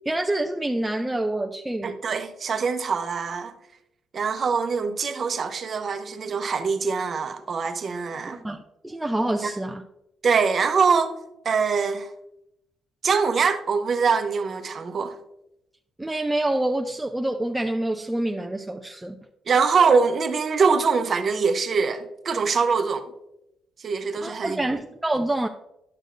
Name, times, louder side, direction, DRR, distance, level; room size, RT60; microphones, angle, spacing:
voice 1, 0.1-1.9 8.3-8.6 8.8-9.8 16.0-19.2 24.2-25.5, right 1 dB, 10° right, 0.5 m, -27 dB
voice 2, 1.8-3.5 4.1-8.4 9.4-9.5 10.2-11.2 11.4-12.1 13.0-15.2 19.5-23.1 23.8-24.6, right 5 dB, 50° right, 0.8 m, -23 dB
10.5 x 6.4 x 2.6 m
cardioid pair, 90°, 0 cm